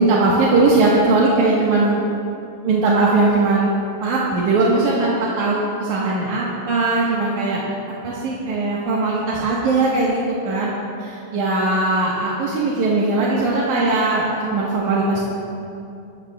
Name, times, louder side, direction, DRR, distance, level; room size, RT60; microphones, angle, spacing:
voice 1, 0.0-2.0 2.6-3.7 4.0-7.6 8.0-10.7 11.0-15.3, right 3 dB, 80° right, -6 dB, 2.8 m, -19 dB
20.0 x 14.5 x 2.4 m, 2.6 s
omnidirectional pair, 3.4 m